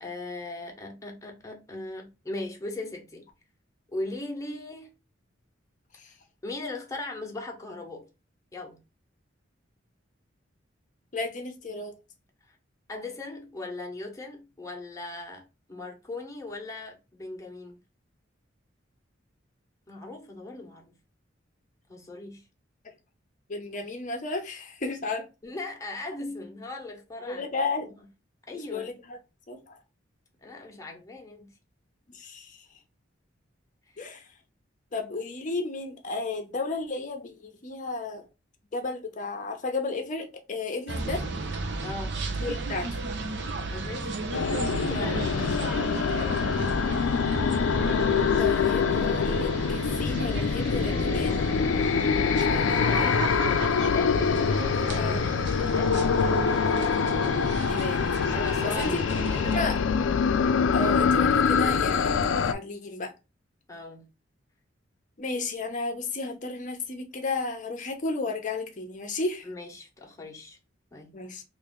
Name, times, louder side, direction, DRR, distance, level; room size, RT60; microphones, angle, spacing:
voice 1, 0.0-3.3 3.9-4.9 6.4-8.1 8.5-8.8 12.5-12.6 12.9-17.8 19.9-20.9 21.9-22.4 25.4-27.5 27.8-27.9 28.5-28.9 30.4-31.5 41.8-42.2 43.7-44.2 44.5-46.4 52.7-54.3 54.8-56.5 58.3-59.7 63.7-64.1 69.4-70.6 70.9-71.2, left 2 dB, 15° left, 1.0 m, -39 dB
voice 2, 11.1-12.0 22.8-22.9 23.5-25.3 27.3-27.9 28.5-29.2 29.5-29.8 32.1-32.6 34.0-34.2 34.9-38.3 38.7-41.2 42.4-43.0 44.9-45.1 48.4-51.5 52.5-53.3 55.0-55.2 57.6-58.3 58.6-59.0 59.5-59.8 60.7-63.1 65.2-69.5 71.1-71.4, left 3 dB, 40° left, 0.7 m, -33 dB
sound 1, 40.9-59.6, right 3 dB, 65° right, 0.6 m, -35 dB
sound 2, 44.3-62.5, left 5 dB, 85° left, 0.4 m, -25 dB
3.2 x 2.6 x 3.6 m
head